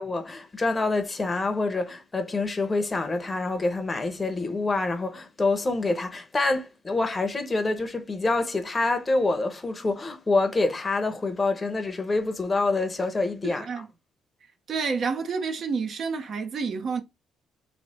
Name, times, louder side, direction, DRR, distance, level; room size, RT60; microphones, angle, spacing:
voice 1, 0.0-13.7, left 3 dB, 15° left, 0.8 m, -26 dB
voice 2, 13.4-13.9 14.7-17.0, right 5 dB, 45° right, 0.8 m, -29 dB
3.2 x 3.0 x 4.2 m
cardioid pair, 155°, 0 cm